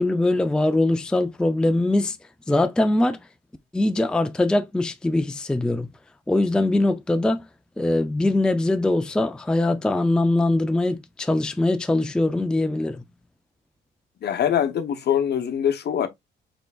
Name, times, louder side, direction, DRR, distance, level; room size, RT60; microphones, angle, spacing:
voice 1, 0.0-2.2 2.5-3.3 3.7-5.9 6.3-7.5 7.8-13.0, left 2 dB, 5° left, 0.4 m, -22 dB
voice 2, 14.2-16.1, left 9 dB, 55° left, 0.8 m, -23 dB
4.6 x 3.8 x 2.3 m
cardioid pair, 90°, 20 cm